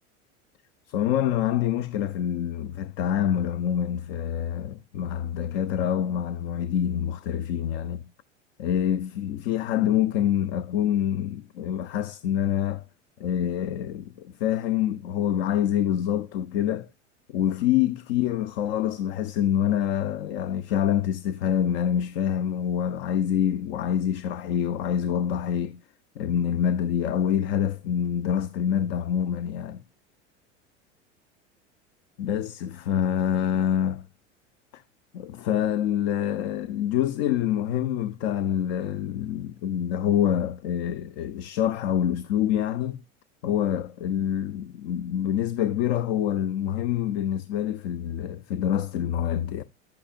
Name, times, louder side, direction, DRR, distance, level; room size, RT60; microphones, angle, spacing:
voice 1, 0.9-8.1 8.6-12.8 13.2-16.9 17.3-25.8 26.2-29.8 32.2-34.1 34.7-34.8 35.1-43.0 43.4-49.6, left 10 dB, 60° left, 0.7 m, -26 dB
10.5 x 8.5 x 2.5 m
hypercardioid pair, 85°, 36 cm